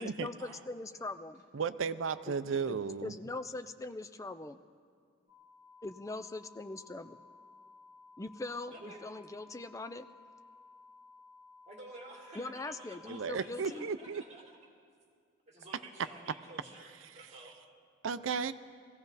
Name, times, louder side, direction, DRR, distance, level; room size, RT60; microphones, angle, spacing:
voice 1, 0.0-1.4 2.3-2.4 2.7-4.6 5.8-7.2 8.2-10.1 12.3-13.9, left 2 dB, 15° left, 11 dB, 0.4 m, -41 dB
voice 2, 1.5-3.1 13.1-14.2 18.0-18.5, right 5 dB, 70° right, 12 dB, 0.5 m, -34 dB
sound 1, 5.3-13.2, left 3 dB, 85° left, 4.3 m, -57 dB
voice 3, 8.7-9.0 11.7-14.6 15.5-17.6, right 2 dB, 30° right, -1 dB, 2.5 m, -51 dB
21.5 x 16.0 x 4.1 m, 2.1 s
head